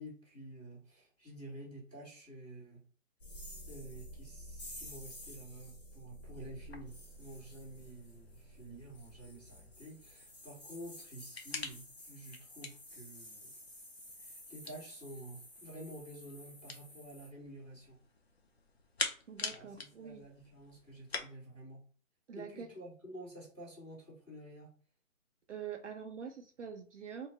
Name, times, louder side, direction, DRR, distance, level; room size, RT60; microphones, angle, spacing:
voice 1, 0.0-2.8 3.7-13.5 14.2-18.0 19.5-21.8 22.3-24.7, right 1 dB, 5° left, -17 dB, 1.3 m, -50 dB
sound 1, 3.2-17.3, equal, 30° left, 1.0 m, -52 dB
sound 2, 6.6-21.2, left 4 dB, 50° left, 0.5 m, -47 dB
voice 2, 19.3-20.2 22.3-22.7 25.5-27.3, right 7 dB, 60° right, 4 dB, 0.5 m, -45 dB
2.9 x 2.4 x 4.0 m, 0.43 s
hypercardioid pair, 180°, 41 cm